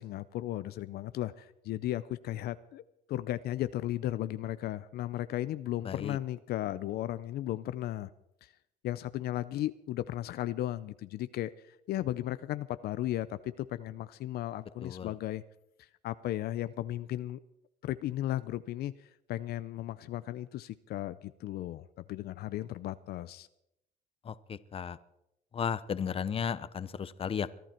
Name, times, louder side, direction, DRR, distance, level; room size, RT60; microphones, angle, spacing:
voice 1, 0.0-2.8 3.1-8.1 8.4-8.5 8.8-15.4 15.8-17.4 17.8-23.5, left 14 dB, 70° left, 14 dB, 0.6 m, -35 dB
voice 2, 5.8-6.2 14.8-15.1 24.2-25.0 25.5-27.5, left 7 dB, 35° left, 16 dB, 0.8 m, -34 dB
23.0 x 11.5 x 4.4 m, 0.83 s
cardioid pair, 110°, 17 cm